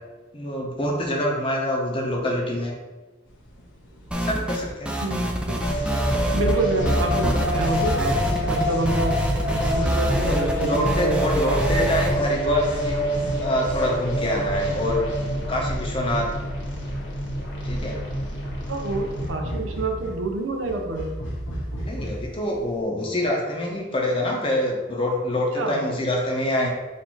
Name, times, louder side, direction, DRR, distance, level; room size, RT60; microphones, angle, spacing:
voice 1, 0.3-2.7 4.1-5.0 10.2-13.0 13.4-15.0 15.5-16.3 17.6-18.0 21.8-26.7, left 1 dB, 25° left, -1 dB, 0.7 m, -25 dB
sound 1, 3.3-22.8, equal, 85° left, 1.0 m, -39 dB
sound 2, 4.1-4.6 4.9-6.6 6.9-12.1, right 1 dB, 5° right, 0.3 m, -26 dB
voice 2, 5.0-5.6 6.3-8.0 8.5-9.2 9.7-11.6 18.7-21.1 25.6-25.8, right 2 dB, 85° right, 3 dB, 0.7 m, -27 dB
sound 3, 5.6-19.3, equal, 65° left, 1.2 m, -27 dB
4.2 x 2.6 x 4.5 m, 1.2 s
head